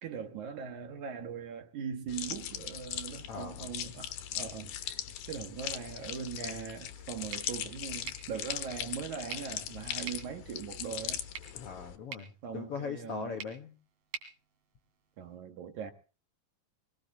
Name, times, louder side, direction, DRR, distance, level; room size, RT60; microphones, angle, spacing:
voice 1, 0.0-5.0 5.3-11.2 12.4-13.4 15.2-15.9, right 7 dB, 60° right, 2.7 m, -40 dB
sound 1, 2.1-12.0, left 10 dB, 85° left, 3.0 m, -40 dB
voice 2, 3.3-3.7 11.5-13.7, left 6 dB, 60° left, 1.6 m, -40 dB
sound 2, 7.3-15.4, right 7 dB, 75° right, 4.1 m, -49 dB
23.5 x 19.0 x 2.7 m
omnidirectional pair, 4.2 m